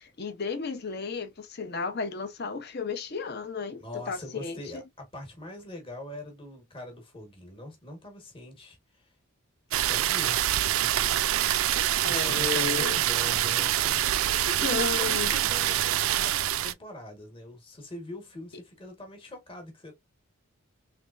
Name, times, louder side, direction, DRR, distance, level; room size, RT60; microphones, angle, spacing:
voice 1, 0.0-4.6 12.0-13.0 14.6-15.3, left 5 dB, 50° left, 0.7 m, -33 dB
voice 2, 3.8-9.1 9.7-11.4 11.7-19.9, left 1 dB, 25° left, 1.2 m, -43 dB
sound 1, 9.7-16.7, right 12 dB, 75° right, 0.3 m, -25 dB
3.3 x 3.2 x 2.4 m
head